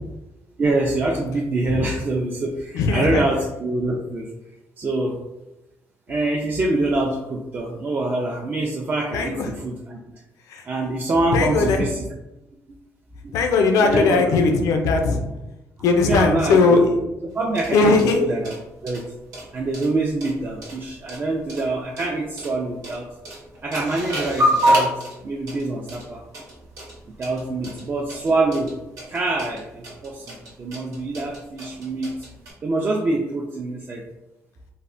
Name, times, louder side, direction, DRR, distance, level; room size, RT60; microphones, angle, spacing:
voice 1, 0.6-4.3 4.8-5.2 6.1-10.0 10.6-12.1 13.2-13.3 13.9-14.4 16.0-16.8 17.3-18.5 18.8-19.0 19.5-23.1 23.6-26.2 27.2-28.7 29.1-32.3 32.6-34.0, right 2 dB, 35° right, -1 dB, 0.3 m, -25 dB
voice 2, 2.7-3.2 9.1-9.5 10.5-10.6 11.3-11.8 13.3-15.2 15.8-17.0 17.7-18.3, left 4 dB, 90° left, 4 dB, 0.4 m, -18 dB
sound 1, 17.3-32.5, equal, 85° right, 1.0 m, -28 dB
3.2 x 2.0 x 2.5 m, 0.97 s
cardioid pair, 120°, 6 cm